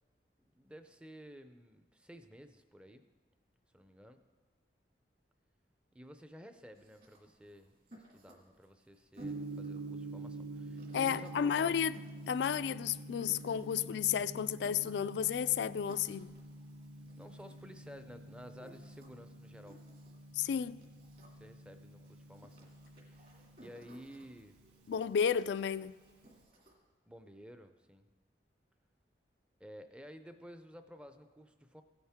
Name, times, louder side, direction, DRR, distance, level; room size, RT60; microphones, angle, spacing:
voice 1, 0.5-3.0 3.7-4.2 5.9-11.9 17.2-19.8 21.4-22.7 23.0-24.6 27.1-28.1 29.6-31.8, equal, 5° right, 0.5 m, -53 dB
sound 1, 6.7-26.7, right 1 dB, 50° right, 2.4 m, -62 dB
Gong, 9.2-26.4, right 2 dB, 80° right, 1.8 m, -48 dB
voice 2, 10.9-11.9 12.3-16.3 20.3-20.8 24.9-25.9, left 8 dB, 75° left, 0.3 m, -32 dB
16.5 x 8.8 x 3.6 m
head